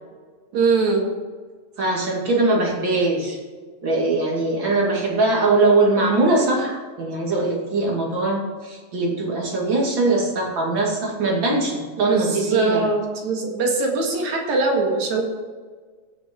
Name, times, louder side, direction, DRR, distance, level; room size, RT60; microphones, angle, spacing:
voice 1, 0.5-1.0 12.0-15.2, right 3 dB, 75° right, 1 dB, 3.2 m, -22 dB
voice 2, 1.8-3.4 3.8-12.9, right 2 dB, 40° right, -2 dB, 3.1 m, -21 dB
16.0 x 6.6 x 4.6 m, 1.5 s
omnidirectional pair, 3.3 m